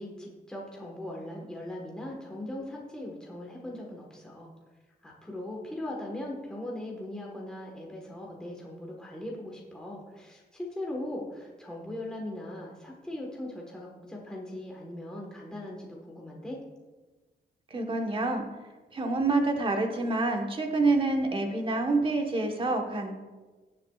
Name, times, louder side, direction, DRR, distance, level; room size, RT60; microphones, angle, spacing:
voice 1, 0.0-4.5 5.0-16.6, left 1 dB, 5° left, -2 dB, 1.3 m, -39 dB
voice 2, 17.7-18.4 18.9-23.1, right 3 dB, 30° right, 3 dB, 1.2 m, -27 dB
18.0 x 7.4 x 2.4 m, 1.3 s
wide cardioid pair, 175°, 17 cm